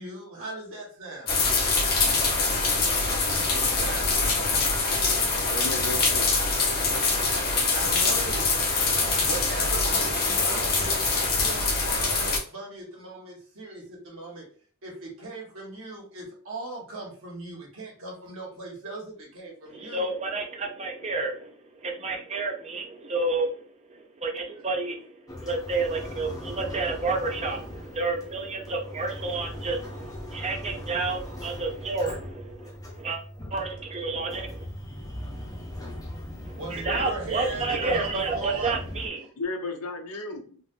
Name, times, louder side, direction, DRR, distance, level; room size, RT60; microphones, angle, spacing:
voice 1, 0.0-1.3 3.6-4.3 7.7-8.5 9.2-14.5 14.8-20.1 36.5-38.7, right 2 dB, 65° right, 1.5 m, -39 dB
sound 1, 1.3-12.4, left 3 dB, 45° left, 1.0 m, -24 dB
voice 2, 5.5-6.6 39.4-40.6, left 2 dB, 80° left, 0.8 m, -34 dB
voice 3, 19.7-33.2 33.5-34.6 36.4-39.3, right 3 dB, 30° right, 0.7 m, -30 dB
sound 2, 25.3-39.1, left 1 dB, 15° left, 0.6 m, -39 dB
3.7 x 2.5 x 2.4 m
head